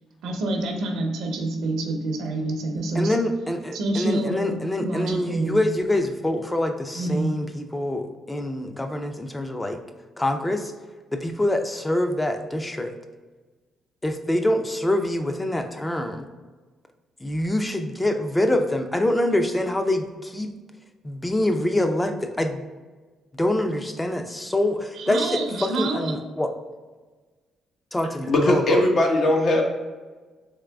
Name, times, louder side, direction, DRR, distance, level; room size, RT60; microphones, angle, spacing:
voice 1, 0.2-3.2 3.7-5.6 6.9-7.3 25.0-26.1, right 2 dB, 80° right, 3 dB, 0.7 m, -27 dB
voice 2, 2.9-9.8 10.2-10.7 11.1-12.9 14.0-16.2 17.2-20.5 21.0-22.6 23.4-26.5 27.9-28.8, left 1 dB, 15° left, 6 dB, 0.5 m, -25 dB
voice 3, 28.3-29.6, left 1 dB, 60° left, 1 dB, 0.9 m, -19 dB
3.6 x 3.3 x 3.4 m, 1.3 s
cardioid pair, 90°, 0 cm